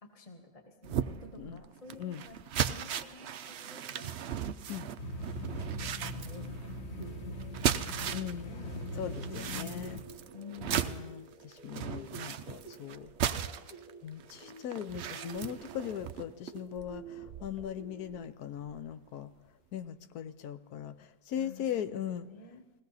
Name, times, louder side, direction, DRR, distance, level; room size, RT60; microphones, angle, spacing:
voice 1, 0.0-2.4 2.6-4.2 5.4-7.2 7.5-7.6 7.9-8.7 10.3-11.1 21.3-22.6, left 3 dB, 20° left, 3 dB, 1.4 m, -51 dB
sound 1, 0.8-8.4 8.7-17.7 18.1-18.2 18.7-18.8, right 9 dB, 75° right, 0.6 m, -37 dB
sound 2, 5.0-10.0, left 1 dB, 40° left, 1.5 m, -41 dB
sound 3, 7.0-18.3, right 3 dB, 25° right, 1.4 m, -50 dB
voice 2, 8.1-8.6 9.0-10.0 10.7-13.1 14.0-19.3 19.7-22.2, left 9 dB, 65° left, 12 dB, 1.2 m, -39 dB
20.5 x 17.0 x 4.1 m, 1.1 s
omnidirectional pair, 1.9 m